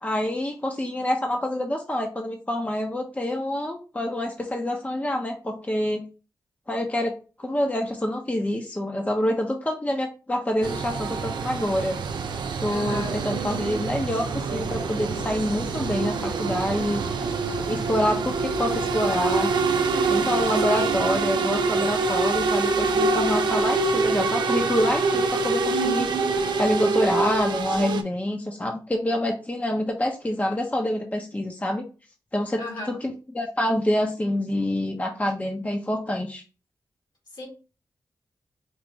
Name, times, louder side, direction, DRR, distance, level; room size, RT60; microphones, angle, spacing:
voice 1, 0.0-6.0 6.7-12.0 12.6-17.0 17.7-19.5 20.1-26.1 26.6-31.8 32.3-36.4, left 1 dB, 20° left, 0.7 m, -26 dB
sound 1, 10.6-28.0, right 4 dB, 80° right, 0.5 m, -25 dB
voice 2, 12.7-13.2 20.4-21.0 32.6-33.0 37.3-37.5, left 3 dB, 65° left, 2.0 m, -36 dB
4.6 x 2.5 x 3.1 m
cardioid pair, 45°, 8 cm